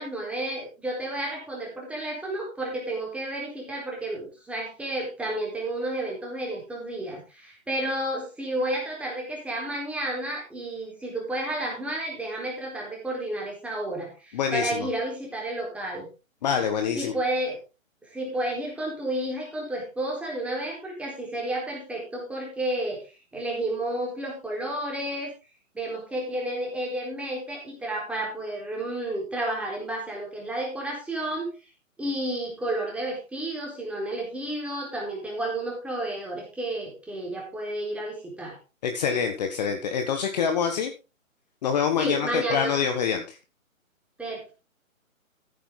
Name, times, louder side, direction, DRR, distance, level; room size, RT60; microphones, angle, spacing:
voice 1, 0.0-16.1 17.0-17.6 18.0-25.3 25.7-31.5 32.0-38.6 42.0-42.7 44.2-44.5, right 1 dB, 5° right, -1 dB, 4.0 m, -31 dB
voice 2, 14.3-14.9 16.4-17.1 38.8-40.9 41.6-43.4, left 7 dB, 30° left, 5 dB, 1.5 m, -26 dB
15.0 x 8.9 x 3.8 m, 0.30 s
figure-of-eight pair, 145°, 41 cm